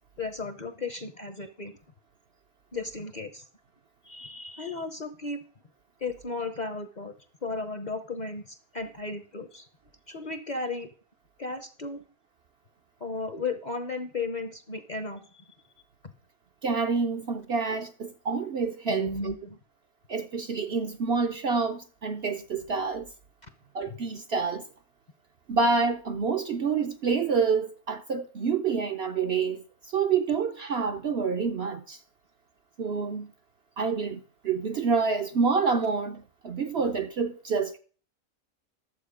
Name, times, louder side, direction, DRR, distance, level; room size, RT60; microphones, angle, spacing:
voice 1, 0.2-1.8 2.7-3.5 4.0-5.4 6.0-7.1 7.4-9.7 10.1-10.9 11.4-12.0 13.0-15.5 18.9-19.6, left 3 dB, 40° left, 0.8 m, -35 dB
voice 2, 16.6-19.3 20.1-23.1 23.7-24.6 25.5-32.0 32.8-33.3 33.8-37.8, right 5 dB, 55° right, 0.7 m, -28 dB
11.5 x 7.4 x 5.0 m
omnidirectional pair, 1.5 m